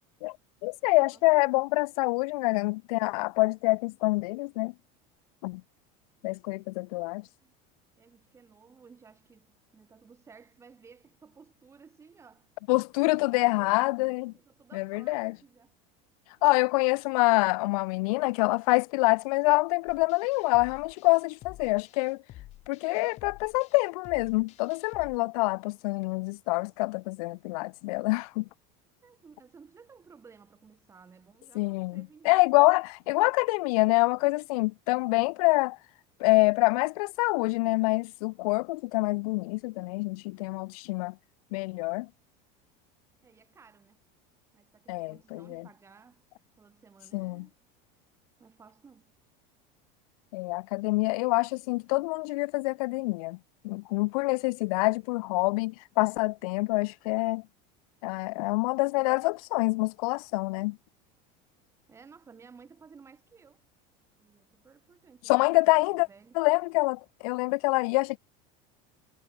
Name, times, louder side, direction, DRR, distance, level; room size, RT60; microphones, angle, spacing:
voice 1, 0.6-4.7 5.4-5.6 6.2-7.2 12.7-14.3 14.7-15.3 16.4-22.2 22.7-28.5 31.5-35.8 36.2-41.2 41.5-42.1 44.9-45.7 47.1-47.5 50.3-53.4 53.6-57.4 58.0-60.8 65.3-66.1 66.3-68.2, left 25 dB, 75° left, 0.9 m, -26 dB
voice 2, 7.2-7.5 8.0-12.5 13.4-13.8 14.0-15.8 29.0-32.4 43.2-44.0 44.5-46.3 46.6-47.5 48.4-49.1 61.9-63.6 64.2-65.3 65.6-66.4, right 5 dB, 15° right, 5.3 m, -56 dB
sound 1, 19.9-25.2, left 16 dB, 35° left, 1.8 m, -50 dB
cardioid pair, 175°, 19 cm